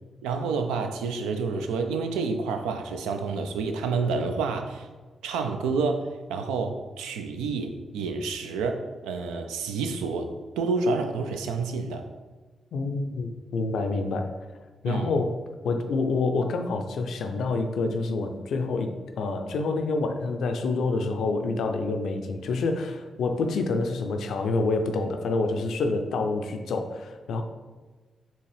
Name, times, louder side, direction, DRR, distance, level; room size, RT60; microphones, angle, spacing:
voice 1, 0.2-4.9 5.2-10.3 10.6-12.0 14.9-15.1, right 4 dB, 85° right, 5 dB, 0.3 m, -29 dB
voice 2, 12.7-14.3 14.8-15.3 15.6-27.4, left 3 dB, 75° left, 6 dB, 0.4 m, -27 dB
4.3 x 2.9 x 3.3 m, 1.3 s
hypercardioid pair, 40°, 0 cm